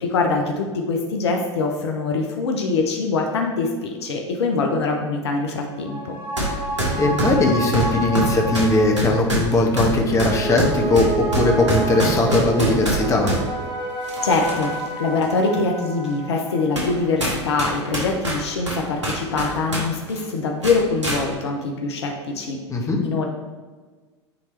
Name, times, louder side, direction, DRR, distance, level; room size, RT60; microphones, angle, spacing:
voice 1, 0.0-6.2 14.2-22.6 23.0-23.2, left 3 dB, 65° left, 2 dB, 0.8 m, -23 dB
sound 1, 5.6-18.5 18.8-18.9, right 2 dB, 35° right, 1.8 m, -30 dB
sound 2, 6.4-6.5 6.8-13.4 14.0-14.8 15.2-15.3 16.0-16.1 16.8-16.9 17.2-19.8 20.1-20.2 20.6-21.2, right 1 dB, 80° right, 1.8 m, -24 dB
voice 2, 7.0-13.3 22.7-23.0, left 2 dB, 20° left, 1 dB, 1.2 m, -19 dB
9.4 x 3.3 x 3.2 m, 1.4 s
figure-of-eight pair, 85°, 15 cm